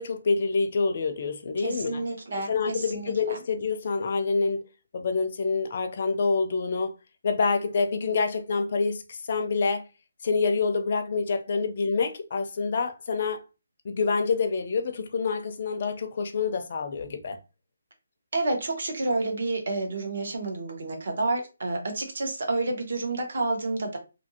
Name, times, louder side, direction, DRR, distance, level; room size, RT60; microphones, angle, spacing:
voice 1, 0.0-2.0 2.3-4.7 4.9-6.9 7.2-9.9 10.2-13.4 13.8-17.4, left 4 dB, 35° left, 0.4 m, -27 dB
voice 2, 1.6-3.4 18.3-24.0, right 2 dB, 50° right, 0.9 m, -29 dB
2.7 x 2.5 x 2.7 m
hypercardioid pair, 175°, 0 cm